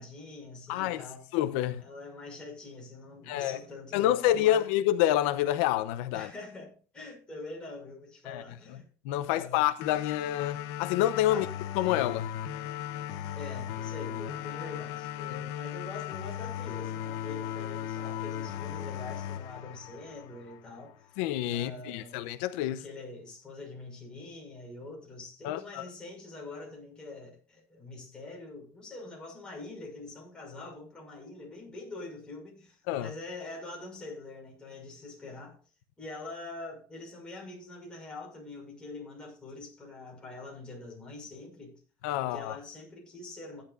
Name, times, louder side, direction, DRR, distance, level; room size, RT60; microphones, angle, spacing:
voice 1, 0.0-1.2 1.8-4.7 6.1-8.9 9.2-9.6 11.3-11.5 13.3-21.1 21.5-22.3 22.7-35.6 36.0-41.8 42.2-43.6, left 2 dB, 15° left, 5.9 m, -44 dB
voice 2, 0.7-1.0 1.3-1.8 3.3-3.6 3.9-6.3 8.3-8.4 9.0-11.5 11.8-12.3 21.2-22.8 25.4-25.8 32.9-33.1 42.0-42.6, left 13 dB, 85° left, 0.8 m, -28 dB
sound 1, 9.8-20.8, left 11 dB, 60° left, 1.0 m, -37 dB
15.5 x 10.0 x 2.5 m
cardioid pair, 155°, 6 cm